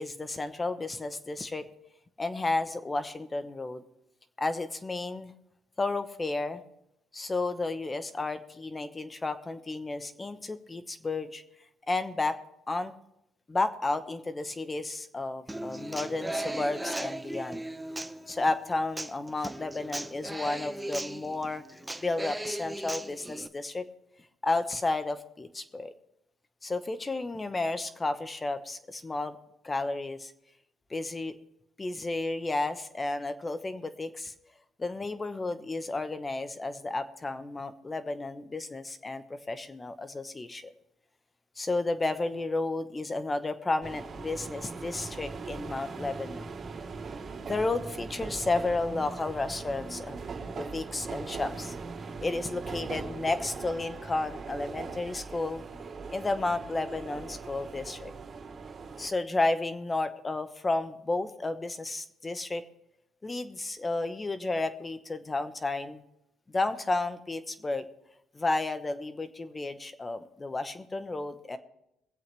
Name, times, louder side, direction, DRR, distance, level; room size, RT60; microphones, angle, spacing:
voice 1, 0.0-1.7 2.2-3.8 4.4-5.3 5.8-6.6 7.1-11.4 11.9-12.4 12.7-12.9 13.5-17.6 18.3-21.6 22.0-23.9 24.4-25.9 26.6-29.4 29.6-30.3 30.9-31.3 31.8-34.3 34.8-40.7 41.6-46.5 47.5-50.2 50.5-51.7 52.2-55.6 56.1-58.1 59.0-62.6 63.2-66.0 66.5-67.9 68.3-71.6, left 2 dB, 20° left, 10 dB, 0.9 m, -32 dB
Human voice / Acoustic guitar, 15.5-23.5, right 1 dB, 5° right, 0.6 m, -38 dB
sound 1, 43.8-59.1, right 4 dB, 35° right, 3.2 m, -40 dB
23.0 x 7.9 x 3.3 m, 0.82 s
cardioid pair, 120°, 0 cm